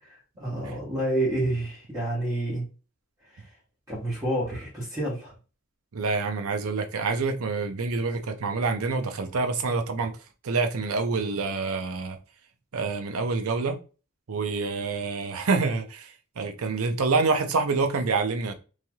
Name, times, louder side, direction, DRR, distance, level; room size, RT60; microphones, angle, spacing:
voice 1, 0.0-2.6 3.9-5.3, right 1 dB, 15° right, 1.1 m, -29 dB
voice 2, 5.9-10.1 10.4-12.2 12.7-13.8 14.3-18.5, right 4 dB, 85° right, 0.6 m, -27 dB
3.2 x 2.8 x 2.2 m
head